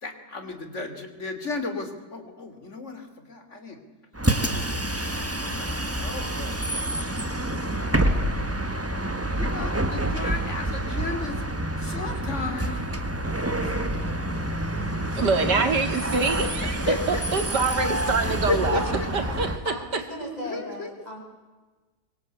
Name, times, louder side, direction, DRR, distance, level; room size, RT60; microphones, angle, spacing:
voice 1, 0.0-3.8 4.4-7.0 7.4-8.6 9.4-11.4 11.8-14.5 15.1-15.7 16.6-17.2 18.3-19.4 20.4-20.9, left 3 dB, 45° left, 8 dB, 3.3 m, -35 dB
Bus, 4.1-19.6, right 1 dB, 10° right, 1.5 m, -28 dB
voice 2, 15.1-16.8 17.1-18.8 19.1-19.6, right 4 dB, 80° right, 7 dB, 2.9 m, -25 dB
voice 3, 19.6-21.2, equal, 25° left, 0 dB, 6.9 m, -36 dB
25.0 x 24.0 x 8.3 m, 1.3 s
omnidirectional pair, 1.8 m